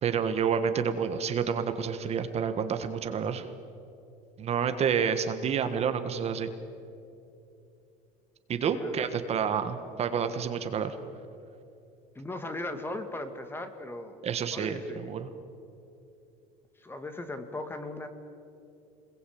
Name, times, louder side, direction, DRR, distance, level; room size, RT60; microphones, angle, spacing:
voice 1, 0.0-3.5 4.4-6.5 8.5-11.0 14.2-15.3, right 7 dB, 40° right, 8 dB, 1.6 m, -29 dB
voice 2, 12.2-14.2 14.5-15.1 16.8-18.1, left 2 dB, 15° left, 8 dB, 2.0 m, -38 dB
25.5 x 21.5 x 8.7 m, 2.7 s
supercardioid pair, 125°, 17 cm